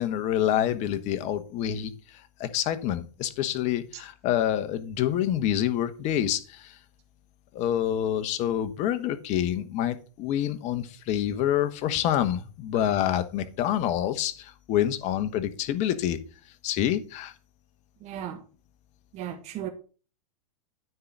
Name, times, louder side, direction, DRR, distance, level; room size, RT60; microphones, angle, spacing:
voice 1, 0.0-1.9 2.4-6.7 7.5-16.2 16.6-17.3, left 11 dB, 40° left, 1.1 m, -27 dB
voice 2, 18.0-18.4 19.1-19.7, right 11 dB, 35° right, 1.3 m, -35 dB
9.6 x 3.9 x 7.0 m
hypercardioid pair, 125°, 19 cm